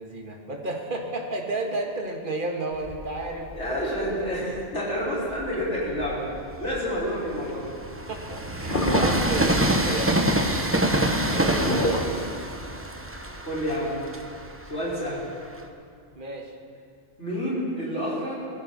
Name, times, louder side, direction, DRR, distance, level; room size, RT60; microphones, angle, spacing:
voice 1, 0.0-3.5 7.9-10.2 16.2-16.5, right 2 dB, 45° right, 1 dB, 1.8 m, -32 dB
Train, 2.8-4.5 5.1-15.7, right 1 dB, 10° right, 0.8 m, -27 dB
voice 2, 3.5-6.3 6.6-7.7 11.3-11.7 13.5-14.0 14.6-15.2 17.2-18.3, equal, 70° left, -7 dB, 5.0 m, -29 dB
sound 1, 8.7-9.5 11.5-12.7 13.3-13.4, equal, 45° left, 1.6 m, -26 dB
20.5 x 15.0 x 4.2 m, 2.3 s
omnidirectional pair, 1.2 m